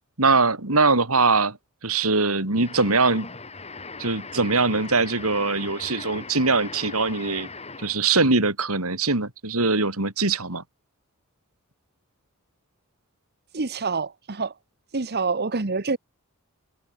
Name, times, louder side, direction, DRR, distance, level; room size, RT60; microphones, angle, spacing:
voice 1, 0.2-1.6 1.8-3.3 4.0-7.5 7.8-10.6, right 3 dB, 75° right, 4.5 m, -22 dB
sound 1, 2.6-8.1, left 4 dB, 30° left, 6.0 m, -39 dB
voice 2, 13.5-14.5 14.9-16.0, right 4 dB, 50° right, 1.3 m, -26 dB
head